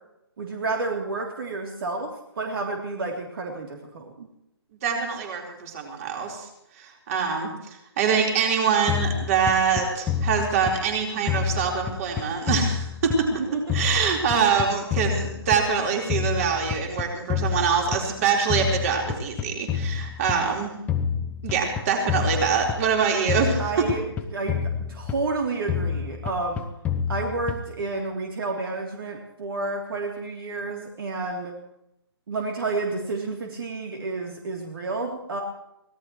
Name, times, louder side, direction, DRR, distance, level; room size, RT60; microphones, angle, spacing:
voice 1, 0.4-4.3 23.6-24.0 24.3-26.7 27.1-31.6 32.3-35.4, right 3 dB, 55° right, 1 dB, 3.3 m, -30 dB
voice 2, 4.8-6.5 6.8-7.5 8.0-13.4 13.7-20.7 21.4-23.9, right 6 dB, 35° right, 1 dB, 4.3 m, -24 dB
sound 1, 8.9-11.0 11.3-13.4 13.7-15.8 16.1-18.2 18.5-20.5 20.9-23.0 23.3-25.4 25.7-27.8, left 7 dB, 10° left, 0.7 m, -28 dB
24.5 x 18.0 x 3.2 m, 0.83 s
hypercardioid pair, 155°, 14 cm